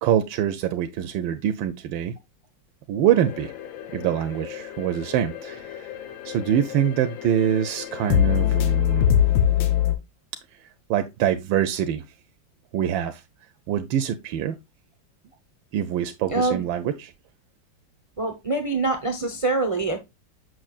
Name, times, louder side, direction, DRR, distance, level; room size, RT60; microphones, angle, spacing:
voice 1, 0.0-2.1 2.9-3.5 3.9-5.9 6.2-9.1 10.6-12.0 12.7-13.2 13.7-14.6 15.7-17.1, right 10 dB, 85° right, 1.3 m, -25 dB
sound 1, 3.1-9.9, left 10 dB, 85° left, 1.5 m, -25 dB
voice 2, 16.3-16.6 18.2-20.0, right 3 dB, 55° right, 0.3 m, -24 dB
6.4 x 6.3 x 2.3 m
omnidirectional pair, 2.0 m